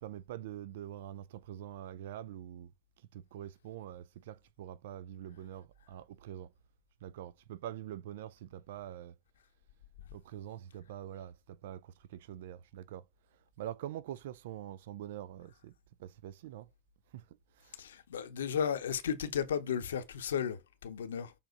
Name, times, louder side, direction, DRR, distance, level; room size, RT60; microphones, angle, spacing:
voice 1, 0.0-2.7 3.1-6.5 7.0-9.1 10.1-13.0 13.6-15.7 16.0-16.7 17.1-17.2 17.6-17.8, right 11 dB, 65° right, 0.5 m, -45 dB
voice 2, 17.8-21.3, left 8 dB, 75° left, 0.9 m, -34 dB
7.0 x 3.6 x 4.0 m
figure-of-eight pair, 80°, 0 cm